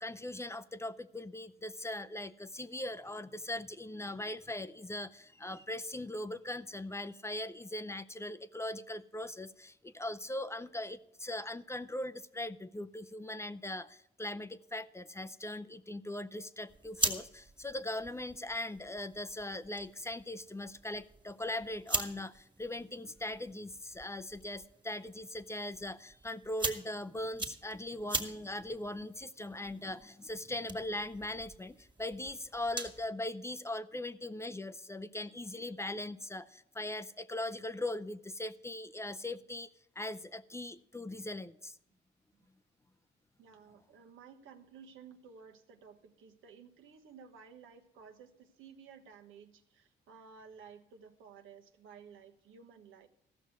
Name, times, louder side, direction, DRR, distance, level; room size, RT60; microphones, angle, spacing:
voice 1, 0.0-39.7 40.0-41.8, left 1 dB, 15° left, 0.5 m, -40 dB
sound 1, 16.7-33.1, right 3 dB, 25° right, 1.7 m, -42 dB
voice 2, 43.4-53.1, right 6 dB, 85° right, 1.2 m, -55 dB
14.5 x 6.2 x 8.0 m
cardioid pair, 90°, 20 cm